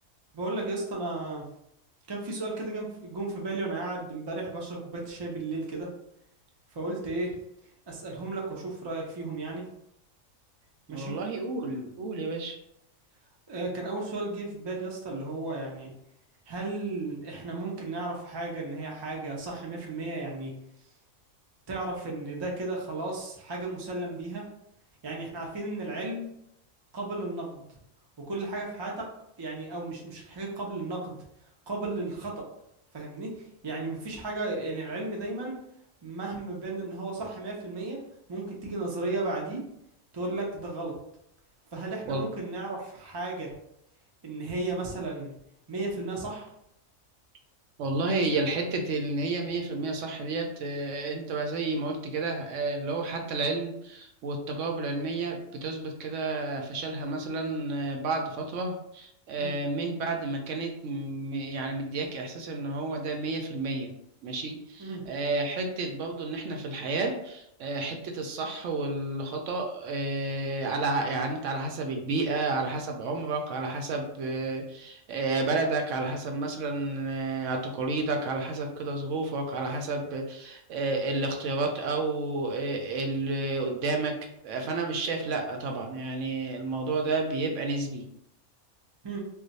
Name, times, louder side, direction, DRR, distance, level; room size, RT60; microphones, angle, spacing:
voice 1, 0.3-1.4 2.1-5.9 6.7-7.3 7.9-9.7 10.9-11.2 13.5-15.9 16.5-20.5 21.7-24.4 25.0-26.3 26.9-27.6 28.2-29.1 29.4-31.2 31.7-32.5 32.9-35.6 36.0-38.0 38.3-39.6 40.1-40.9 41.7-43.5 44.2-45.3 45.7-46.5 59.4-59.6 64.8-65.0 89.0-89.2, right 2 dB, 40° right, -2 dB, 0.3 m, -34 dB
voice 2, 10.9-12.6 42.1-42.2 47.8-63.9 64.2-84.1 84.4-88.0, right 3 dB, 70° right, 3 dB, 0.9 m, -31 dB
2.4 x 2.2 x 3.9 m, 0.76 s
omnidirectional pair, 1.4 m